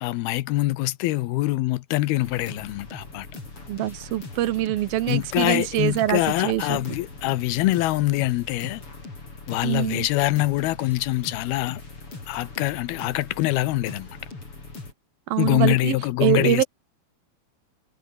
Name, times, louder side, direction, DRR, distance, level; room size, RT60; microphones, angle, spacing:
voice 1, 0.0-3.3 5.1-8.8 9.5-11.8 12.3-14.2 15.4-16.6, left 17 dB, 80° left, 2.7 m, -24 dB
sound 1, 2.2-14.9, left 3 dB, 35° left, 7.3 m, -40 dB
voice 2, 3.7-6.9 9.6-10.1 15.3-16.0 16.2-16.6, right 14 dB, 75° right, 2.7 m, -24 dB
omnidirectional pair, 4.5 m